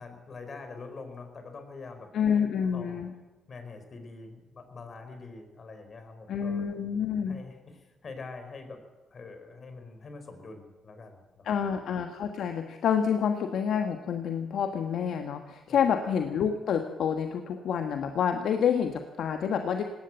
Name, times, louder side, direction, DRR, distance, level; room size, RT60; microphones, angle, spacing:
voice 1, 0.0-3.0 3.5-6.6 7.3-8.8 9.1-11.6 15.7-15.8, left 3 dB, 50° left, 7 dB, 4.8 m, -45 dB
voice 2, 2.1-3.1 6.3-7.4 11.4-19.8, left 7 dB, 70° left, 6 dB, 1.4 m, -28 dB
19.0 x 17.0 x 7.9 m, 1.2 s
hypercardioid pair, 50°, 0 cm